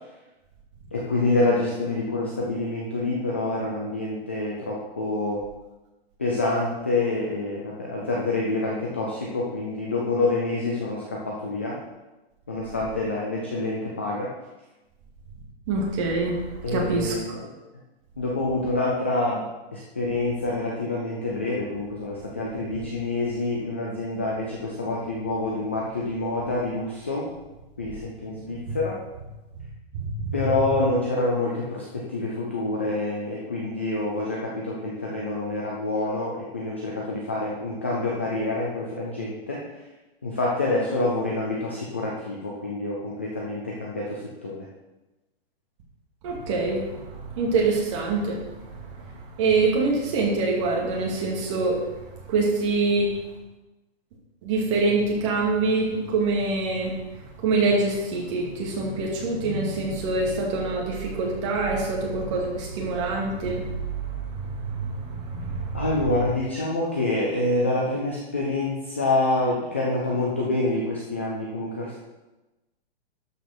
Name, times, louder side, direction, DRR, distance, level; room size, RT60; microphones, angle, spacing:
voice 1, 0.9-5.4 6.2-11.8 12.5-14.3 16.6-17.5 18.2-27.3 27.8-29.0 30.3-39.6 40.2-44.7 65.7-72.0, left 2 dB, 10° left, -4 dB, 0.4 m, -27 dB
voice 2, 15.7-16.4 16.7-17.2 29.9-30.3 46.2-48.4 49.0-49.1 49.4-51.8 52.3-53.1 54.4-56.9 57.4-65.9, right 3 dB, 30° right, -1 dB, 2.2 m, -25 dB
12.0 x 5.2 x 5.9 m, 1.1 s
hypercardioid pair, 175°, 31 cm